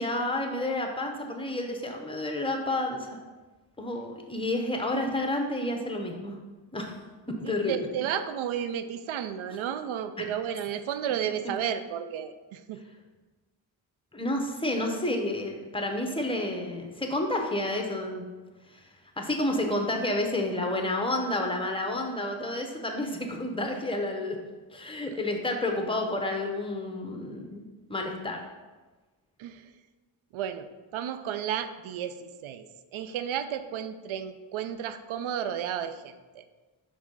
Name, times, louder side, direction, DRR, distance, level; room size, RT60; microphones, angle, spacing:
voice 1, 0.0-3.2 3.8-6.4 6.7-7.0 7.4-7.8 10.2-10.3 14.1-18.2 19.2-24.4 24.7-27.6 27.9-28.4, left 1 dB, 10° left, 3 dB, 1.1 m, -30 dB
voice 2, 7.4-12.8 29.4-29.7 30.3-30.7 30.9-32.7 32.9-36.4, right 9 dB, 75° right, 11 dB, 0.6 m, -33 dB
5.0 x 3.6 x 5.4 m, 1.3 s
cardioid pair, 55°, 49 cm